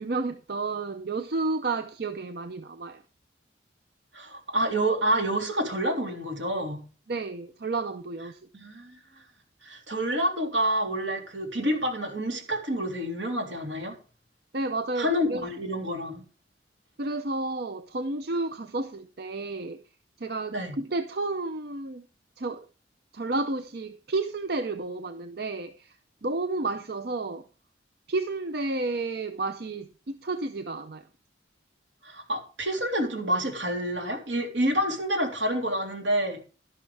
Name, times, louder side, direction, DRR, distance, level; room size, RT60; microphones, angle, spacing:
voice 1, 0.0-3.0 7.1-8.4 14.5-15.5 17.0-19.8 20.2-22.1 22.4-22.7 23.1-26.0 26.2-27.5 28.1-31.0, right 3 dB, 55° right, 0.6 m, -31 dB
voice 2, 4.1-6.8 8.5-9.0 9.6-13.9 15.0-16.2 20.5-20.7 32.0-36.4, equal, 80° right, 3.4 m, -28 dB
12.0 x 11.5 x 3.4 m
head